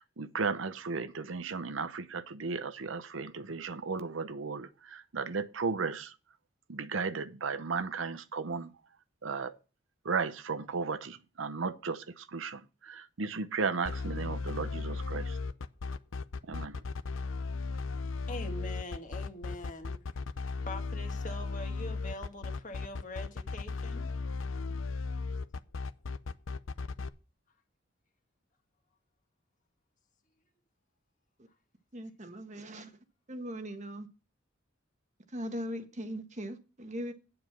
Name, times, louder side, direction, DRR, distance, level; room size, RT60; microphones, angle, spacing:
voice 1, 0.0-6.2 6.7-8.8 9.2-9.6 10.0-15.4 16.4-16.8, right 4 dB, 80° right, 0.8 m, -35 dB
sound 1, 13.9-27.1, left 4 dB, 80° left, 0.6 m, -36 dB
voice 2, 18.0-20.0 20.6-24.1, left 1 dB, 40° left, 1.8 m, -43 dB
voice 3, 31.9-33.0 33.3-34.1 35.3-37.1, equal, 35° right, 1.3 m, -39 dB
9.2 x 7.7 x 5.7 m
head